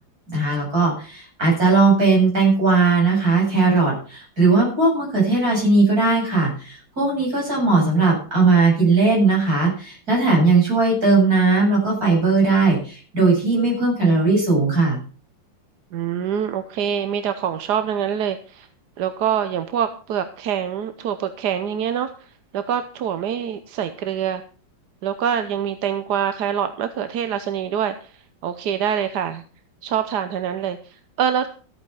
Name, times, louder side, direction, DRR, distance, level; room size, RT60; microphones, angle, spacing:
voice 1, 0.3-15.0, right 3 dB, 45° right, -3 dB, 8.4 m, -18 dB
voice 2, 15.9-18.7 19.0-24.4 25.0-29.4 29.8-31.5, right 8 dB, 60° right, 10 dB, 1.3 m, -25 dB
14.5 x 8.8 x 5.6 m, 0.40 s
omnidirectional pair, 2.2 m